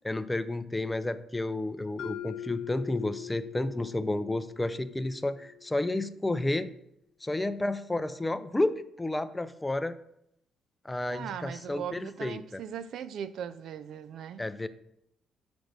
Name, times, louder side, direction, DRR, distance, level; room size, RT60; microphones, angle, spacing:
voice 1, 0.0-6.7 7.2-10.0 10.8-12.6 14.4-14.7, left 2 dB, 15° left, 0.5 m, -31 dB
Mallet percussion, 2.0-6.0, left 11 dB, 75° left, 0.6 m, -42 dB
voice 2, 11.1-14.4, right 8 dB, 75° right, 0.4 m, -39 dB
6.3 x 5.2 x 6.0 m
cardioid pair, 90°, 0 cm